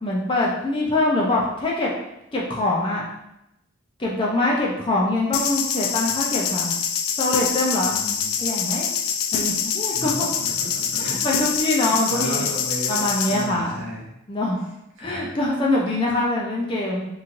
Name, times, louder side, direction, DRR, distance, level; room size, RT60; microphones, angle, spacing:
voice 1, 0.0-1.9 2.3-3.0 4.0-6.7 7.2-8.0 8.4-8.9 9.3-10.3 11.0-12.5 12.9-13.9 14.3-14.7 15.0-17.1, left 2 dB, 25° left, -3 dB, 0.4 m, -24 dB
sound 1, 5.3-13.5, left 7 dB, 85° left, 0.3 m, -25 dB
voice 2, 7.8-8.3 9.9-11.3 11.9-14.0 15.0-15.3, equal, 70° right, -4 dB, 0.9 m, -34 dB
3.1 x 2.5 x 2.5 m, 0.87 s
head